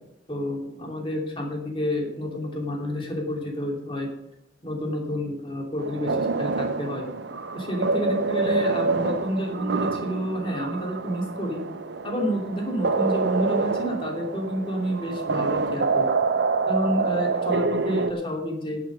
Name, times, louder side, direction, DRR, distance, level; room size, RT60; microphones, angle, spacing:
voice 1, 0.3-4.1 4.6-7.0 7.5-11.6 12.0-16.1 16.7-18.8, equal, 30° left, 0 dB, 2.8 m, -29 dB
sound 1, 5.8-18.1, right 4 dB, 65° right, 0.6 m, -26 dB
11.0 x 8.5 x 6.5 m, 0.82 s
head